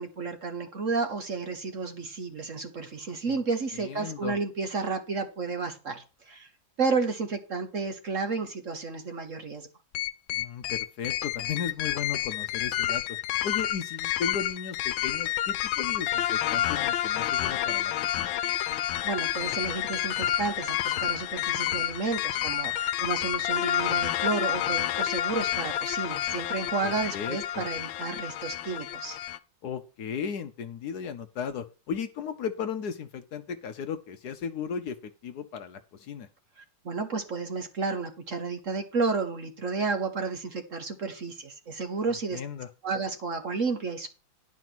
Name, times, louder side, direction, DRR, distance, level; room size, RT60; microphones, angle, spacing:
voice 1, 0.0-6.5 6.8-9.7 18.7-29.2 36.8-42.4 42.8-44.1, right 4 dB, 50° right, 7 dB, 1.2 m, -32 dB
voice 2, 3.7-4.4 10.3-13.2 13.4-18.3 26.8-27.6 29.6-36.3 42.3-42.7, left 7 dB, 65° left, 9 dB, 1.1 m, -36 dB
sound 1, 9.9-29.4, left 12 dB, 90° left, 1.4 m, -29 dB
11.0 x 5.0 x 6.0 m, 0.33 s
omnidirectional pair, 2.1 m